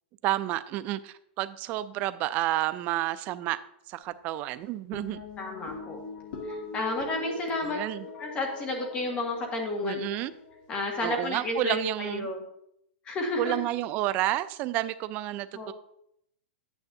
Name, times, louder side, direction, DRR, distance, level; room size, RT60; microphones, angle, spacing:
voice 1, 0.2-3.6 3.9-5.2 7.6-8.1 9.8-10.3 11.0-12.3 13.4-15.7, right 14 dB, 25° right, 13 dB, 0.3 m, -30 dB
sound 1, 4.9-11.5, left 4 dB, 45° left, 1.9 m, -42 dB
voice 2, 5.4-6.0 6.5-7.8 8.2-10.1 10.7-12.4 13.0-13.5 15.5-15.7, left 2 dB, 20° left, 2 dB, 1.6 m, -31 dB
10.5 x 9.1 x 2.7 m, 0.74 s
supercardioid pair, 165°, 6 cm